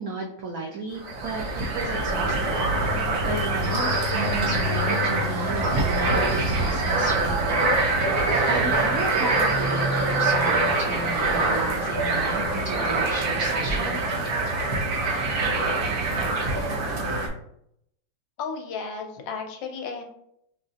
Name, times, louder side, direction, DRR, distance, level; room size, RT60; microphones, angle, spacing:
voice 1, 0.0-1.4 1.7-14.0, right 2 dB, 85° right, -1 dB, 0.7 m, -34 dB
sound 1, 1.0-17.3, right 2 dB, 60° right, 1.1 m, -24 dB
voice 2, 18.4-20.0, left 5 dB, 75° left, 3 dB, 1.3 m, -33 dB
5.5 x 2.4 x 2.5 m, 0.74 s
omnidirectional pair, 2.1 m